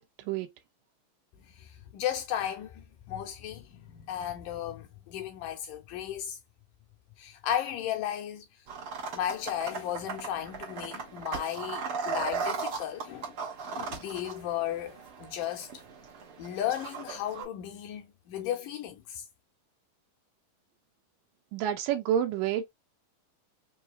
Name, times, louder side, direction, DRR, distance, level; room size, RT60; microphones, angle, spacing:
voice 1, 1.5-6.4 7.2-8.5 9.1-13.4 13.7-15.7 16.4-19.2, left 10 dB, 75° left, 2.1 m, -35 dB
sound 1, 8.7-17.4, right 5 dB, 60° right, 1.5 m, -38 dB
voice 2, 21.5-22.7, right 10 dB, 75° right, 2.2 m, -28 dB
5.5 x 2.7 x 2.3 m
omnidirectional pair, 4.2 m